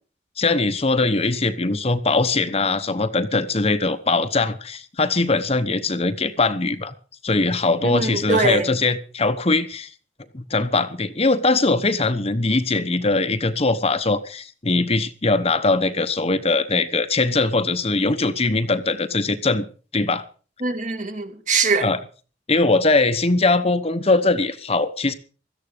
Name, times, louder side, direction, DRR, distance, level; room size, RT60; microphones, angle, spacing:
voice 1, 0.4-6.9 7.2-9.9 10.3-19.6 19.9-20.2 21.8-22.0 22.5-25.1, left 3 dB, 35° left, 1.0 m, -21 dB
voice 2, 7.8-8.7 20.6-21.9, right 4 dB, 45° right, 2.6 m, -22 dB
17.0 x 13.0 x 5.1 m
head